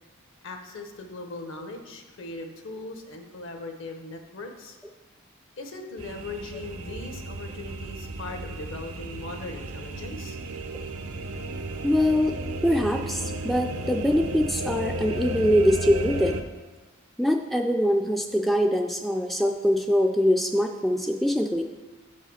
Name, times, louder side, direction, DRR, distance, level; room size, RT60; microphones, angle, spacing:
voice 1, 0.4-4.8 5.6-10.4, left 2 dB, 65° left, 5 dB, 1.0 m, -39 dB
sound 1, 6.0-16.4, right 2 dB, 80° right, 0.6 m, -34 dB
voice 2, 11.8-12.4 12.6-16.4 17.2-21.6, equal, ahead, 3 dB, 0.3 m, -23 dB
7.6 x 4.8 x 5.6 m, 1.3 s
head